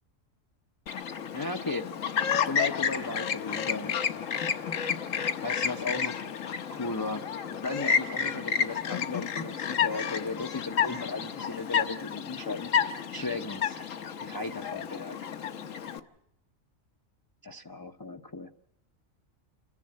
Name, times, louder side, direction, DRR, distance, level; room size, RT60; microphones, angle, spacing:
Chirp tweet, 0.9-16.0, left 7 dB, 75° left, 1.3 m, -31 dB
voice 1, 1.3-1.9 2.4-4.3 5.4-6.2 6.7-12.7 13.1-13.8 14.2-15.2 17.4-18.5, left 3 dB, 25° left, 5 dB, 0.5 m, -36 dB
28.5 x 10.5 x 8.7 m, 0.83 s
omnidirectional pair, 1.4 m